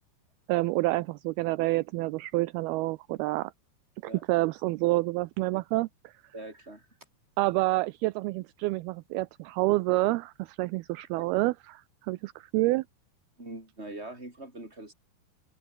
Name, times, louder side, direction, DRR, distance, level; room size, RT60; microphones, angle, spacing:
voice 1, 0.5-3.5 4.0-6.1 7.4-12.8, right 21 dB, 80° right, 2.3 m, -28 dB
voice 2, 6.3-6.9 11.1-11.3 13.4-14.9, right 2 dB, 15° right, 7.0 m, -42 dB
open air
omnidirectional pair, 4.9 m